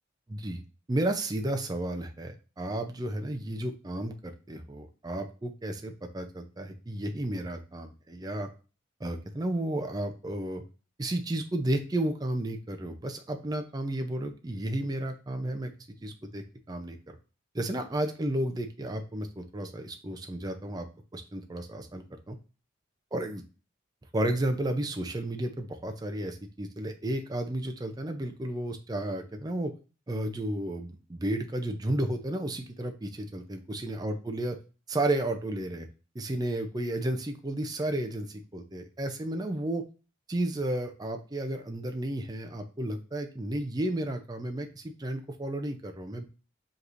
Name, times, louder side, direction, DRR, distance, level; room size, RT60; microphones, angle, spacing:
voice 1, 0.3-0.6 0.9-8.5 9.0-10.6 11.0-15.7 16.0-17.2 17.5-20.9 21.1-22.4 23.1-23.4 24.1-29.7 30.1-34.6 34.9-35.9 36.1-39.8 40.3-46.3, right 1 dB, 20° right, 5 dB, 0.4 m, -32 dB
5.1 x 3.1 x 2.5 m, 0.34 s
head